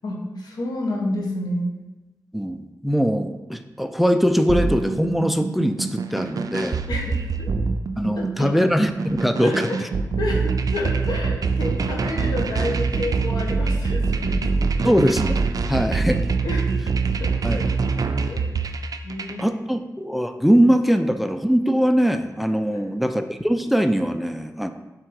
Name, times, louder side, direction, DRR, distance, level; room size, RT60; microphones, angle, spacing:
voice 1, 0.0-1.7 6.9-7.5 8.4-8.7 9.4-9.8 10.2-14.4 14.8-14.9 16.4-18.5 19.0-19.8 22.7-23.0, left 1 dB, 90° left, -1 dB, 1.4 m, -30 dB
voice 2, 2.3-6.8 8.0-9.7 14.8-15.3 15.7-16.3 17.4-17.6 19.4-24.7, equal, ahead, 8 dB, 0.4 m, -21 dB
sound 1, 4.5-19.4, right 4 dB, 65° right, 0.5 m, -24 dB
7.7 x 3.8 x 4.8 m, 1.1 s
wide cardioid pair, 90°, 7 cm